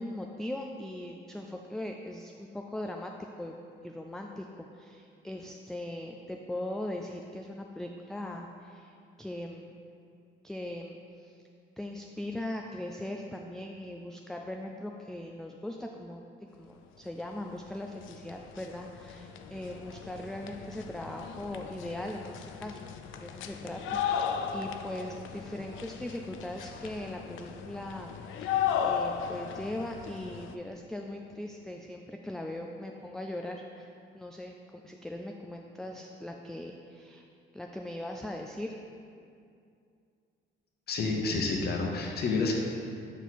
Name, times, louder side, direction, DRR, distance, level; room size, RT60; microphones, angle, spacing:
voice 1, 0.0-3.1 3.4-3.6 3.8-9.9 10.4-11.4 11.8-16.3 16.6-22.9 23.2-33.9 34.1-37.3 37.5-38.7, left 1 dB, ahead, 2 dB, 0.3 m, -40 dB
sound 1, 17.5-17.6 17.8-30.5, left 8 dB, 80° left, 0.4 m, -36 dB
voice 2, 40.9-42.5, left 3 dB, 55° left, -1 dB, 1.0 m, -29 dB
6.9 x 4.5 x 4.1 m, 2.4 s
cardioid pair, 90°, 20 cm